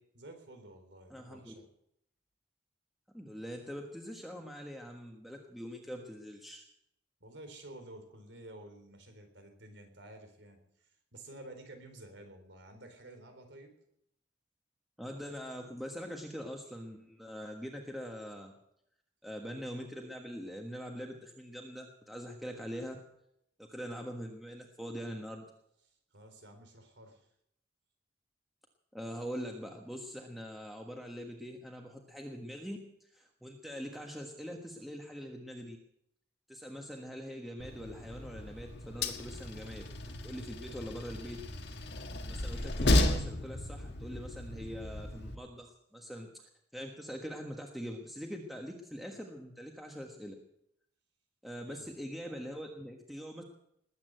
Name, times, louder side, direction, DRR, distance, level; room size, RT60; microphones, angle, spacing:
voice 1, 0.1-1.7 7.2-13.7 25.9-27.3 51.6-51.9, right 1 dB, 85° right, 6 dB, 3.9 m, -51 dB
voice 2, 1.1-1.5 3.1-6.7 15.0-18.5 19.2-23.0 23.6-25.5 28.9-35.8 36.5-39.9 40.2-41.4 42.2-50.3 51.4-53.4, equal, ahead, 1 dB, 1.4 m, -43 dB
Train, 37.6-45.4, left 1 dB, 65° left, 1.7 m, -34 dB
20.5 x 8.7 x 8.0 m, 0.75 s
head